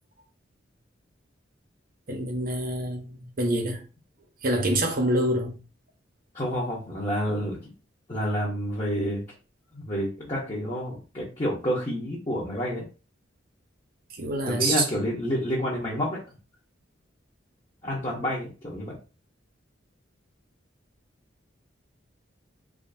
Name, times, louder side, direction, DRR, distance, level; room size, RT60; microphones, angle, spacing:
voice 1, 2.1-3.8 4.4-5.6 14.1-14.9 18.1-18.2, right 1 dB, 50° right, 0.8 m, -26 dB
voice 2, 6.3-7.6 8.1-9.2 9.7-12.8 14.5-16.2 17.8-19.0, equal, 30° left, 1.0 m, -29 dB
3.6 x 2.8 x 2.7 m
head